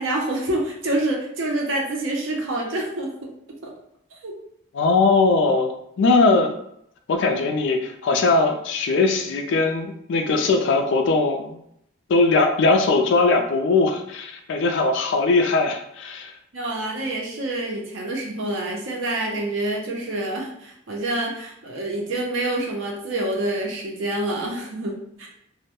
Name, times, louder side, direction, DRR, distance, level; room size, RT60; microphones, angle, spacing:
voice 1, 0.0-3.3 3.6-3.7 4.2-4.3 16.5-25.3, right 1 dB, 65° right, 0 dB, 0.6 m, -27 dB
voice 2, 4.7-6.5 7.1-11.6 12.1-16.3, left 3 dB, 60° left, 5 dB, 0.3 m, -20 dB
2.1 x 2.0 x 2.8 m, 0.75 s
head